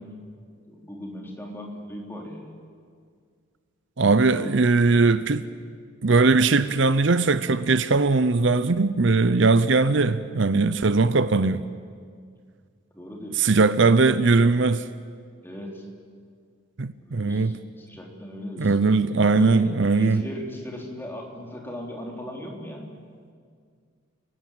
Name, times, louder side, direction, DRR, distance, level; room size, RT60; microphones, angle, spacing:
voice 1, 0.7-2.5 4.3-4.5 12.9-13.4 15.4-15.9 17.1-18.7 19.3-22.9, equal, 10° left, 3.6 m, -38 dB
voice 2, 4.0-5.4 6.0-11.7 13.3-14.8 16.8-17.6 18.6-20.2, right 3 dB, 60° right, 0.7 m, -20 dB
29.5 x 19.0 x 9.0 m
head